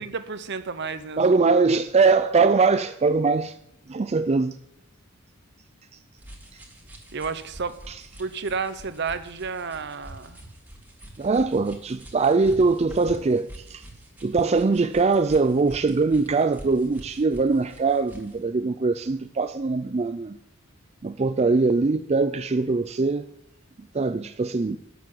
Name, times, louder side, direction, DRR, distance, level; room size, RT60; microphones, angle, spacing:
voice 1, 0.0-1.3 7.1-7.8 8.2-10.4, right 5 dB, 55° right, 0.9 m, -31 dB
voice 2, 1.2-3.5 3.9-4.6 6.5-6.6 7.9-8.0 11.2-13.8 14.2-20.4 21.0-23.3 23.9-24.8, right 4 dB, 30° right, 0.4 m, -22 dB
sound 1, 6.2-18.4, right 1 dB, 10° right, 2.2 m, -46 dB
12.0 x 7.2 x 9.2 m
head